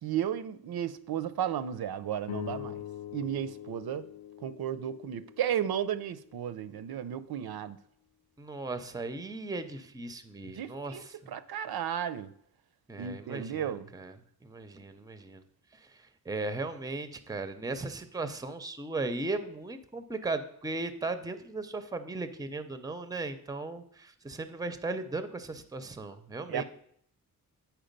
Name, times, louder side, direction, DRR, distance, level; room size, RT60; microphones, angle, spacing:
voice 1, 0.0-2.8 3.1-4.1 4.4-7.8 10.4-12.3 13.0-13.9 26.5-26.6, right 9 dB, 80° right, 0.5 m, -34 dB
sound 1, 2.2-6.8, left 12 dB, 85° left, 0.6 m, -44 dB
voice 2, 8.4-11.3 12.9-14.2 14.4-15.4 15.7-26.6, right 3 dB, 10° right, 0.5 m, -37 dB
8.9 x 4.6 x 5.2 m
wide cardioid pair, 160°, 37 cm